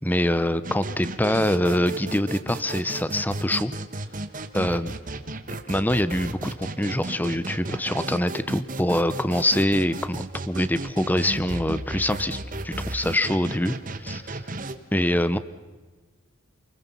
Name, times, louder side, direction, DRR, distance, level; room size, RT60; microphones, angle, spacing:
voice 1, 0.0-3.7 4.5-4.9 5.7-12.4 12.6-14.4 14.9-15.4, left 1 dB, 10° left, 14 dB, 0.9 m, -24 dB
sound 1, 0.6-14.7, right 2 dB, 35° right, 1.4 m, -34 dB
29.0 x 21.5 x 5.6 m, 1.3 s
head